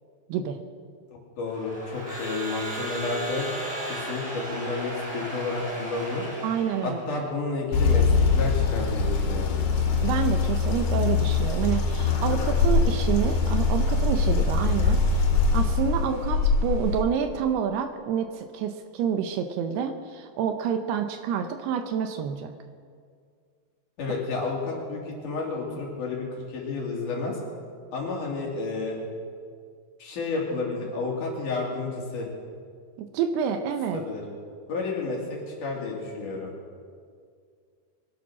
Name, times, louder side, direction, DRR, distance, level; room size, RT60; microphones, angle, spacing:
voice 1, 1.4-3.5 3.8-6.3 6.8-8.1 8.3-9.6 24.0-27.4 27.9-29.0 30.0-32.3 33.9-34.2 34.7-36.5, left 3 dB, 50° left, -2 dB, 3.8 m, -31 dB
Crowd / Alarm, 1.5-7.1, right 1 dB, 10° right, 2.8 m, -35 dB
voice 2, 6.4-7.0 10.0-15.2 15.5-22.5 33.0-34.0, right 8 dB, 75° right, 7 dB, 2.5 m, -28 dB
sound 1, 7.7-17.0, left 4 dB, 80° left, 4.7 m, -23 dB
22.5 x 10.5 x 6.0 m, 2.1 s
omnidirectional pair, 5.0 m